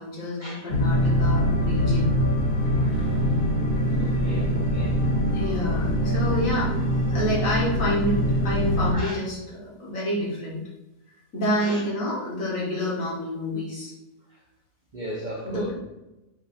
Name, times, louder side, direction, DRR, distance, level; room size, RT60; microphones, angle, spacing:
voice 1, 0.0-2.1 3.9-4.1 5.3-6.7 7.1-10.6 11.3-13.9 15.4-15.7, equal, 60° left, -5 dB, 1.7 m, -28 dB
sound 1, 0.7-8.9, equal, 45° left, 0.8 m, -23 dB
voice 2, 3.9-5.0 8.9-9.1 11.6-11.8 14.9-15.7, equal, 60° right, -2 dB, 0.4 m, -35 dB
4.7 x 2.6 x 4.0 m, 0.97 s
omnidirectional pair, 1.6 m